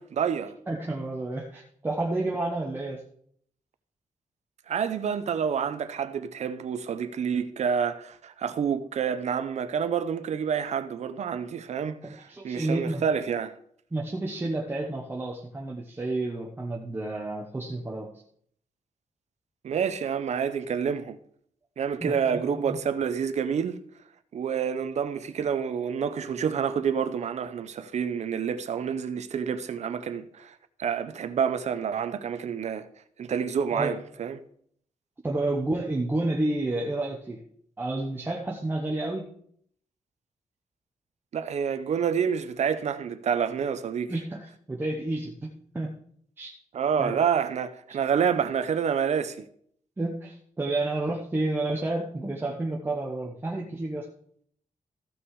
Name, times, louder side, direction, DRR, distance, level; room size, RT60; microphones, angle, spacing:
voice 1, 0.0-0.5 4.7-13.6 19.6-21.2 21.8-23.8 24.3-32.9 33.2-34.4 41.3-44.1 46.7-49.4, right 7 dB, 60° right, 0.8 m, -28 dB
voice 2, 0.7-3.0 12.0-13.0 13.9-18.1 22.0-22.8 33.7-33.9 35.2-37.4 37.8-39.3 44.1-45.9 46.4-46.6 47.0-47.2 50.0-54.1, right 2 dB, 15° right, 1.1 m, -30 dB
14.5 x 6.1 x 4.8 m
wide cardioid pair, 180°, 13 cm